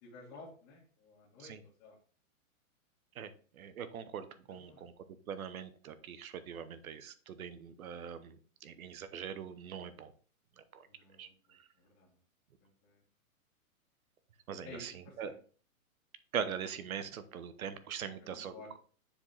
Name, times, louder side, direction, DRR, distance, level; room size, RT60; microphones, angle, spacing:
voice 1, 0.0-1.5 1.8-2.0 4.5-4.8 10.9-11.3 11.8-12.1 12.6-13.0 14.6-15.3 18.2-18.8, left 3 dB, 25° left, -5 dB, 1.7 m, -53 dB
voice 2, 3.6-4.9 5.3-8.3 8.6-10.1 10.7-10.8 11.2-11.3 14.5-15.3 16.3-18.5, right 8 dB, 75° right, 12 dB, 1.0 m, -42 dB
6.9 x 5.0 x 3.3 m, 0.41 s
hypercardioid pair, 165°, 42 cm